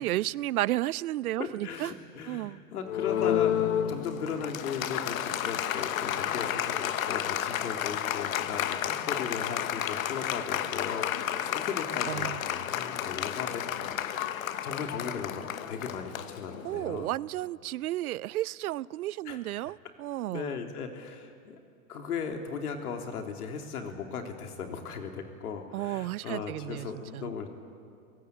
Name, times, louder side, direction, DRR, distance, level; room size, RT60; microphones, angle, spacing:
voice 1, 0.0-1.9 2.3-2.6 12.1-12.4 16.6-20.6 25.7-26.9 27.1-27.3, right 15 dB, 75° right, 0.6 m, -32 dB
voice 2, 1.4-14.3 14.6-17.1 19.2-19.4 19.6-19.7 20.3-21.6 21.9-27.5, left 6 dB, 80° left, 3.4 m, -37 dB
Applause, 2.8-16.9, left 10 dB, 60° left, 1.2 m, -31 dB
29.0 x 18.0 x 8.3 m
supercardioid pair, 175°, 45 cm